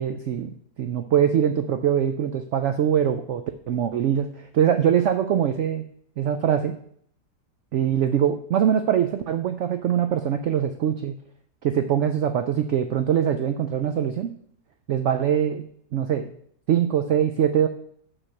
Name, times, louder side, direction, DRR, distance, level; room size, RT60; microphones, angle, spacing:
voice 1, 0.0-5.8 6.2-6.8 7.7-11.1 11.6-14.3 14.9-15.6 15.9-16.3 16.7-17.7, right 9 dB, 70° right, 9 dB, 0.7 m, -23 dB
6.4 x 6.2 x 6.5 m, 0.64 s
omnidirectional pair, 1.8 m